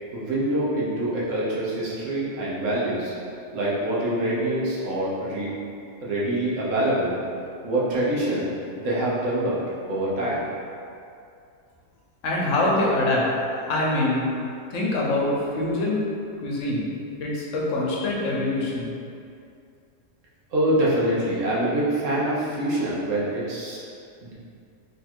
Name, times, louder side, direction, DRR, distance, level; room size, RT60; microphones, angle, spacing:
voice 1, 0.1-3.1 3.5-5.5 6.0-7.2 7.6-8.5 8.8-9.6 9.8-10.4 20.5-23.8 24.2-24.3, right 1 dB, 80° right, -7 dB, 1.3 m, -25 dB
voice 2, 12.2-13.3 13.7-14.3 14.7-16.0 16.4-16.9 17.2-18.9, left 2 dB, 80° left, -4 dB, 1.1 m, -24 dB
3.3 x 2.4 x 4.2 m, 2.5 s
omnidirectional pair, 1.3 m